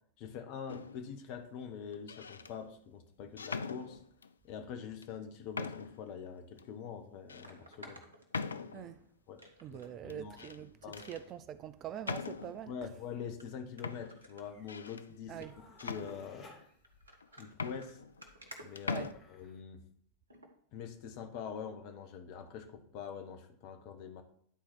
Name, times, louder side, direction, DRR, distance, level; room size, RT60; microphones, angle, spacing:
voice 1, 0.2-4.0 4.4-8.0 9.3-9.4 9.7-10.4 10.8-11.1 12.7-15.5 15.8-16.6 17.4-18.0 18.6-19.8 20.7-24.2, left 7 dB, 45° left, 1.1 m, -44 dB
sound 1, 0.7-1.1 1.9-2.5 3.4-4.3 5.0-5.1 5.5-6.1 6.6-6.7 7.3-7.5 8.3-9.0 10.1-10.6 10.9-11.2 12.0-12.7 13.4-13.5 13.8-15.1 15.8-16.6 17.2-17.3 17.5-18.5 18.8-19.1, left 5 dB, 75° left, 0.4 m, -41 dB
sound 2, 6.4-6.5 7.4-8.9 9.4-10.0 10.3-10.4 10.8-11.3 12.0-12.2 12.9-13.0 13.4-13.5 13.8-14.9 15.3-15.5 15.8-16.1 16.8-19.5 20.3-20.5 21.0-21.1, right 1 dB, 75° right, 1.2 m, -55 dB
voice 2, 8.7-9.0 9.6-10.7 11.1-12.7 15.3-15.6 18.9-19.1, right 10 dB, 30° right, 0.4 m, -44 dB
sound 3, 14.4-19.6, left 2 dB, 25° left, 2.3 m, -62 dB
10.0 x 4.2 x 6.0 m
figure-of-eight pair, 90°, 0 cm